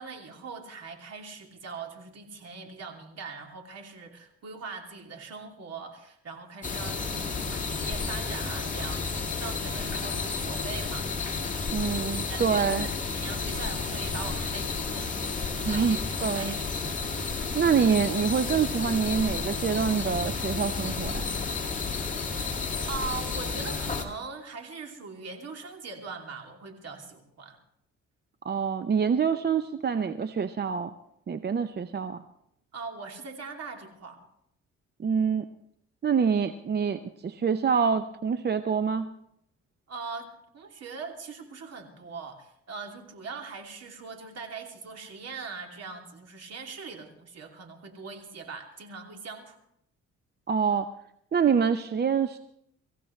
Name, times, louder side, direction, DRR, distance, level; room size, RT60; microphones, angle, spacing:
voice 1, 0.0-11.3 12.3-16.6 22.9-27.6 32.7-34.2 39.9-40.3 40.5-49.6, right 4 dB, 55° right, 3 dB, 2.9 m, -41 dB
sound 1, 6.6-24.1, left 4 dB, 25° left, 2.3 m, -31 dB
voice 2, 11.7-12.9 15.6-16.0 16.2-16.5 17.5-21.2 28.4-30.9 31.3-32.2 35.0-35.5 36.0-39.1 50.5-50.9 51.3-52.4, right 6 dB, 35° right, 10 dB, 0.7 m, -26 dB
24.0 x 15.0 x 3.2 m, 0.74 s
cardioid pair, 90°, 30 cm